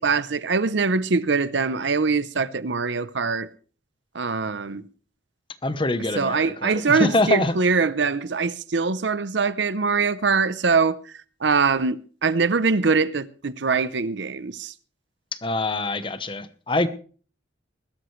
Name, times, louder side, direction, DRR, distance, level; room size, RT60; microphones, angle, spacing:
voice 1, 0.0-3.5 4.1-4.9 6.2-11.1 11.4-14.7, right 4 dB, 70° right, 0.7 m, -23 dB
voice 2, 5.6-7.5 15.3-16.9, left 2 dB, 25° left, 1.0 m, -24 dB
21.0 x 13.0 x 3.2 m
head